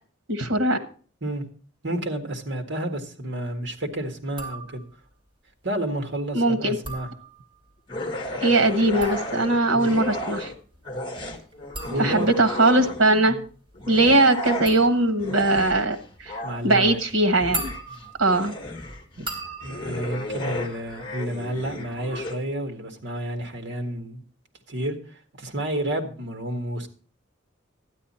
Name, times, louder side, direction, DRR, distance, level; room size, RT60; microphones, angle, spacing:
voice 1, 0.3-0.8 6.3-6.8 8.4-10.5 12.0-13.4 13.9-17.7 18.2-18.5 19.2-19.3, right 2 dB, 85° right, 9 dB, 1.3 m, -20 dB
voice 2, 1.8-4.8 5.6-7.1 9.7-9.9 11.9-12.3 13.3-13.4 16.4-17.0 19.6-24.2 24.7-25.0 25.4-26.9, right 1 dB, 60° right, 5 dB, 1.7 m, -30 dB
sound 1, 4.3-5.1 6.6-7.7 8.7-21.4 21.7-22.3, right 2 dB, 25° right, 2.7 m, -40 dB
sound 2, 7.9-10.6 10.8-13.2 13.7-22.4, left 1 dB, 25° left, 1.5 m, -34 dB
12.0 x 9.6 x 4.3 m, 0.41 s
head